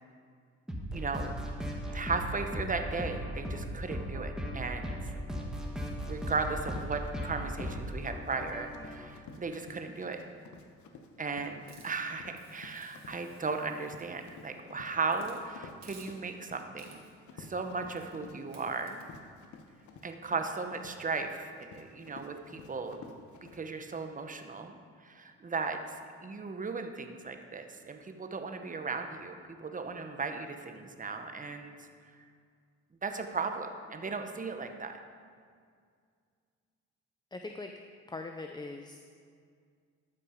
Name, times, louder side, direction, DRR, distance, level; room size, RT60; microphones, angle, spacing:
sound 1, 0.7-9.1, equal, ahead, 1.5 m, -37 dB
voice 1, 0.9-1.3 1.9-5.1 6.1-10.2 11.2-19.0 20.0-23.0 23.5-24.8 25.0-25.8 26.2-31.9 33.0-35.0, right 4 dB, 25° right, 6 dB, 0.9 m, -36 dB
Run, 6.2-23.6, left 4 dB, 75° left, 1.0 m, -52 dB
Hiss, 11.7-14.6 15.1-15.4 15.8-16.4 16.8-17.2 17.9-18.2 18.5-19.0, right 5 dB, 60° right, 2.0 m, -58 dB
voice 2, 37.3-37.7 38.1-39.0, left 3 dB, 15° left, 4 dB, 0.5 m, -41 dB
13.0 x 6.0 x 5.1 m, 2.1 s
cardioid pair, 90°, 30 cm